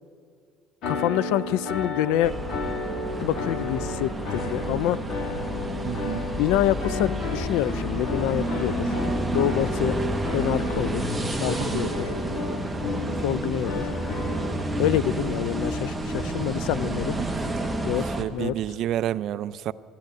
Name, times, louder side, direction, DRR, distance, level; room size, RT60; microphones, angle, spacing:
sound 1, 0.8-14.5, left 3 dB, 55° left, 2.1 m, -33 dB
voice 1, 0.9-2.3 3.2-5.0 6.4-8.9 9.3-10.0 10.3-11.1 11.4-12.0 13.2-13.9 14.8-17.2 17.8-18.0 18.3-18.6, left 13 dB, 90° left, 0.3 m, -26 dB
sound 2, 2.2-18.2, right 1 dB, 5° right, 0.8 m, -30 dB
voice 2, 5.8-6.3 11.7-11.9 17.2-17.5 18.0-19.7, right 12 dB, 50° right, 0.3 m, -30 dB
13.0 x 11.0 x 9.2 m
cardioid pair, 155°, 0 cm